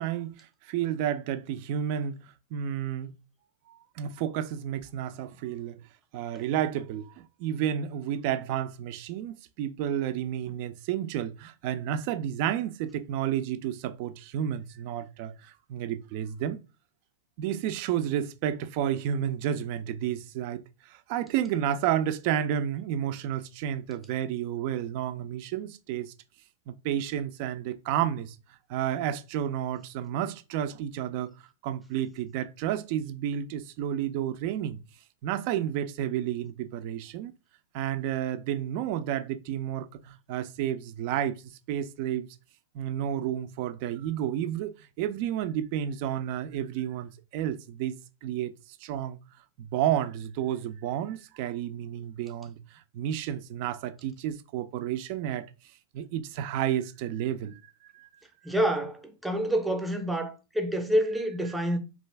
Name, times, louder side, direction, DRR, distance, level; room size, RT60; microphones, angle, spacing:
voice 1, 0.0-2.2 2.5-3.1 3.7-5.8 6.1-16.6 17.4-26.1 26.7-28.4 28.7-31.3 31.6-34.8 35.2-37.3 37.7-41.4 41.7-42.3 42.7-48.5 48.8-49.2 49.6-55.5 55.9-58.1, right 10 dB, 55° right, 0.3 m, -31 dB
voice 2, 58.4-61.8, right 1 dB, 5° right, 0.6 m, -27 dB
2.5 x 2.3 x 3.3 m
hypercardioid pair, 115°, 0 cm